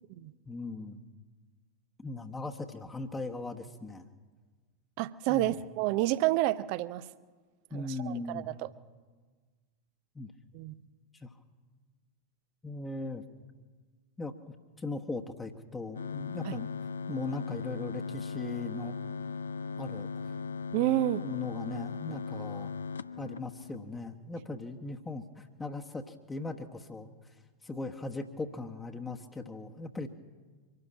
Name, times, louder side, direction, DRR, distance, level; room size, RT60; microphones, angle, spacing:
voice 1, 0.5-1.1 2.0-4.1 5.3-5.6 7.7-8.5 10.1-10.3 11.1-11.3 12.6-13.2 14.2-16.7 17.1-19.0 19.8-20.4 21.2-22.7 23.2-27.4 27.6-30.1, left 3 dB, 10° left, 4 dB, 1.2 m, -39 dB
voice 2, 5.0-7.1 7.7-8.7 10.5-10.8 16.4-16.5 20.7-21.3, right 15 dB, 45° right, 17 dB, 0.7 m, -29 dB
sound 1, 15.9-24.0, left 5 dB, 70° left, 0.6 m, -38 dB
24.5 x 12.5 x 8.7 m, 1.4 s
figure-of-eight pair, 90°, 0 cm